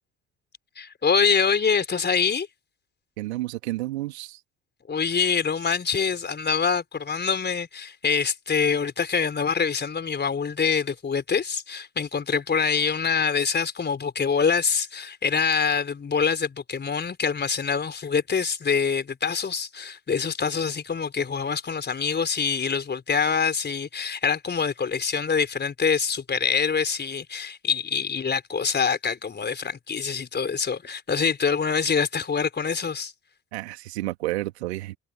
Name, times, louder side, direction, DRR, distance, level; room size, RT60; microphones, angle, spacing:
voice 1, 0.8-2.5 4.9-33.1, left 6 dB, 30° left, 4.4 m, -25 dB
voice 2, 3.2-4.4 33.5-35.0, right 17 dB, 70° right, 2.9 m, -31 dB
figure-of-eight pair, 50°, 34 cm